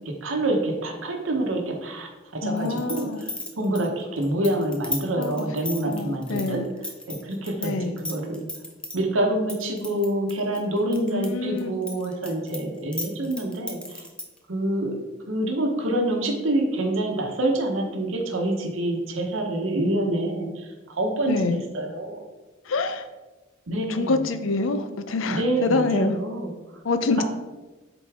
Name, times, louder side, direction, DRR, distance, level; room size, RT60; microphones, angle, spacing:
voice 1, 0.2-2.1 2.4-3.3 3.6-6.7 7.1-8.4 8.9-14.0 14.5-22.2 23.7-24.1 25.3-26.5 27.2-27.3, right 1 dB, 85° right, 2 dB, 1.0 m, -26 dB
voice 2, 2.4-3.2 5.2-5.5 5.8-6.7 7.6-8.0 11.1-11.8 21.3-21.6 22.7-23.1 23.9-26.2 26.8-27.2, left 3 dB, 80° left, 10 dB, 0.5 m, -26 dB
sound 1, 2.6-7.7 8.0-9.0 9.5-11.3 11.6-14.4, left 2 dB, 5° left, 0.7 m, -34 dB
8.1 x 4.0 x 3.5 m, 1.2 s
head